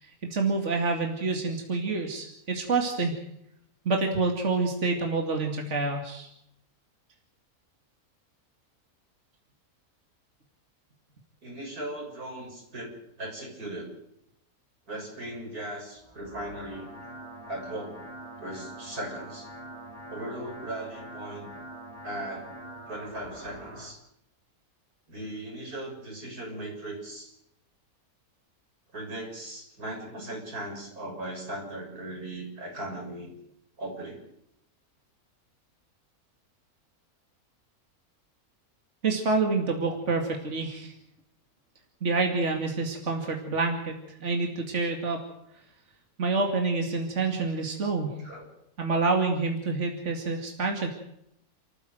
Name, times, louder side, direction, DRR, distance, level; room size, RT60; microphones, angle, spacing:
voice 1, 0.0-3.2 3.8-6.3 39.0-40.9 42.0-43.9 44.2-45.2 46.2-48.2 48.8-50.9, right 3 dB, 50° right, 2 dB, 2.7 m, -27 dB
voice 2, 11.4-12.9 13.2-13.9 14.9-16.9 17.5-18.0 18.4-19.5 20.1-21.5 22.0-22.5 22.9-24.0 25.1-27.3 28.9-33.3 33.8-34.3 48.2-48.5, right 1 dB, 85° right, 0 dB, 7.5 m, -38 dB
sound 1, 16.0-23.9, right 1 dB, 20° right, 2.8 m, -44 dB
29.0 x 14.5 x 7.9 m, 0.78 s
omnidirectional pair, 1.6 m